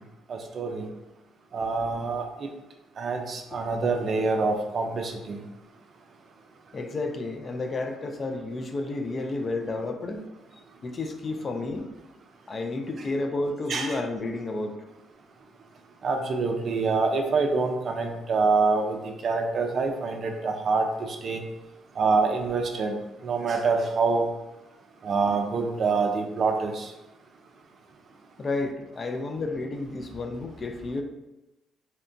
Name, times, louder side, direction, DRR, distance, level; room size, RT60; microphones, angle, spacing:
voice 1, 0.3-0.9 1.5-2.3 3.0-5.4 13.7-14.0 16.0-21.4 22.0-23.0 23.2-24.2 25.0-26.9, right 4 dB, 55° right, 4 dB, 0.4 m, -26 dB
voice 2, 6.7-10.3 10.8-11.9 12.5-14.8 28.4-31.0, left 2 dB, 40° left, 5 dB, 0.4 m, -31 dB
2.8 x 2.2 x 2.5 m, 0.97 s
supercardioid pair, 70°, 0 cm